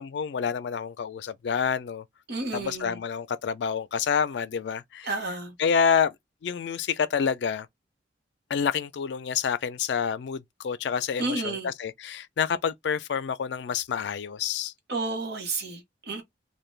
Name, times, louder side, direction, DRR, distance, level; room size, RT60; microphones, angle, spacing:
voice 1, 0.0-2.0 2.5-5.1 5.6-6.1 6.4-7.7 8.5-14.7, left 6 dB, 70° left, 0.4 m, -28 dB
voice 2, 2.3-3.0 5.0-5.5 11.2-11.7 14.9-16.2, right 3 dB, 60° right, 1.0 m, -31 dB
2.3 x 2.2 x 3.2 m
head